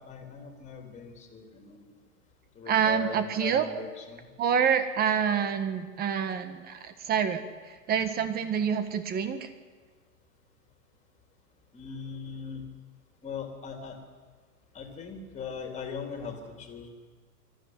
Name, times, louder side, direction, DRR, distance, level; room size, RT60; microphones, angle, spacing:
voice 1, 0.0-1.9 2.5-4.3 11.7-12.6 13.2-14.0 14.7-16.9, left 6 dB, 15° left, 3 dB, 3.4 m, -40 dB
voice 2, 2.7-3.6 4.4-9.5, right 7 dB, 20° right, 10 dB, 1.6 m, -27 dB
24.0 x 14.5 x 9.7 m, 1.5 s
hypercardioid pair, 140°, 48 cm